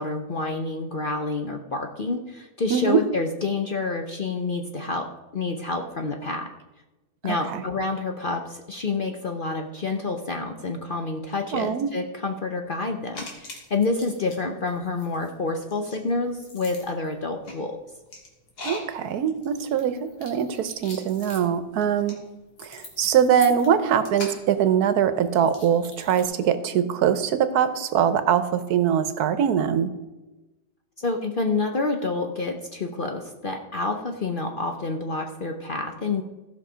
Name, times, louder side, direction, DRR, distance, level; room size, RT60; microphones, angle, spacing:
voice 1, 0.0-6.5 7.2-17.8 23.6-23.8 31.0-36.2, left 3 dB, 45° left, 4 dB, 0.7 m, -28 dB
voice 2, 2.7-3.0 7.2-7.6 11.5-11.9 18.6-22.2 22.6-29.9, right 8 dB, 80° right, 12 dB, 1.3 m, -22 dB
sound 1, 13.1-14.4 14.7-26.2, left 2 dB, 85° left, 2.6 m, -42 dB
15.0 x 5.7 x 5.0 m, 1.1 s
omnidirectional pair, 1.6 m